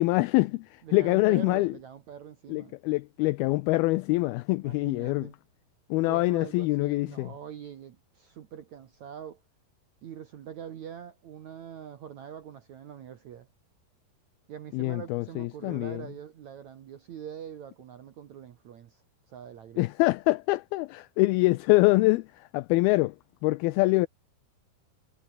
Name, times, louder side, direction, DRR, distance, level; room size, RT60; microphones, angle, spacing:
voice 1, 0.0-1.7 2.5-5.3 5.9-7.3 14.7-16.0 19.8-23.2 23.4-24.1, left 21 dB, 80° left, 2.3 m, -25 dB
voice 2, 0.8-2.8 4.6-5.3 6.0-9.4 10.0-13.5 14.5-19.9, right 9 dB, 60° right, 2.1 m, -44 dB
omnidirectional pair, 4.8 m